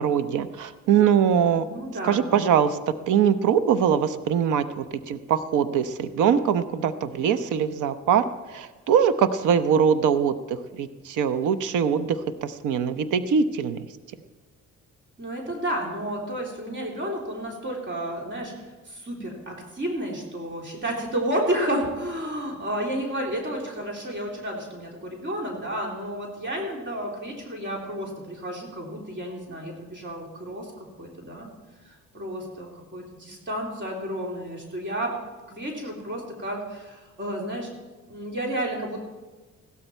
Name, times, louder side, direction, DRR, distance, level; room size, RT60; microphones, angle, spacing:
voice 1, 0.0-1.7 2.1-13.9, right 8 dB, 85° right, 11 dB, 0.9 m, -22 dB
voice 2, 1.7-2.2 15.2-31.5 31.8-35.1 35.5-37.7 38.1-39.0, right 1 dB, 40° right, -1 dB, 3.4 m, -31 dB
16.0 x 13.0 x 4.5 m, 1.3 s
cardioid pair, 90°, 30 cm